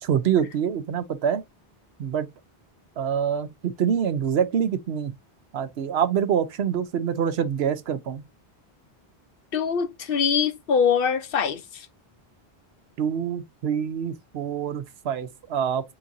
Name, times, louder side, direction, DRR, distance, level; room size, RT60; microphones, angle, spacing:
voice 1, 0.0-1.4 2.0-2.3 3.0-5.1 5.5-8.2 13.0-15.9, right 8 dB, 80° right, 0.9 m, -25 dB
voice 2, 9.5-11.6, left 6 dB, 65° left, 0.8 m, -23 dB
6.9 x 2.6 x 2.6 m
omnidirectional pair, 1.0 m